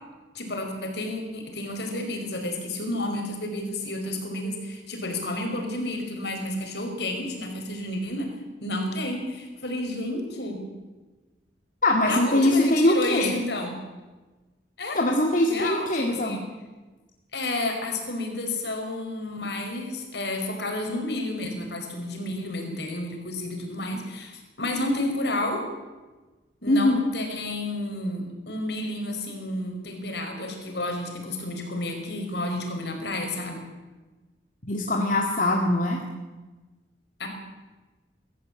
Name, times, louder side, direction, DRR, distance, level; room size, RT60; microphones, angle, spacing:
voice 1, 0.3-8.3 8.6-10.6 12.1-13.8 14.8-15.0 15.5-16.4 17.3-25.7 26.6-33.7 37.2-37.3, left 1 dB, 65° left, 3 dB, 5.2 m, -31 dB
voice 2, 11.8-13.3 14.9-16.4 26.7-27.1 34.7-36.0, left 1 dB, 45° left, 1 dB, 2.1 m, -22 dB
23.0 x 14.0 x 8.8 m, 1.2 s
head